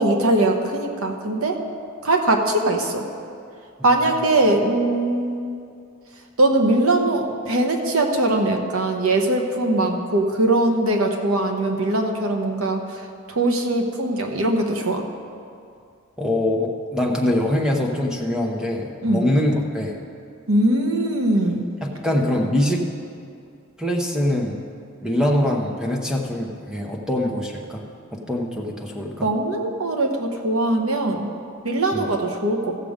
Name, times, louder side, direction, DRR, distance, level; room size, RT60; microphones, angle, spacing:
voice 1, 0.0-1.6 2.0-3.0 3.8-5.4 6.4-13.0 13.3-15.0 19.0-19.3 20.5-21.6 29.2-31.3 31.6-32.8, right 2 dB, 85° right, 3 dB, 1.1 m, -21 dB
voice 2, 16.2-20.0 21.8-22.8 23.8-24.6 25.0-27.8 28.1-29.3 31.9-32.1, left 1 dB, 5° right, 0 dB, 0.9 m, -23 dB
15.0 x 6.8 x 5.1 m, 2.4 s
head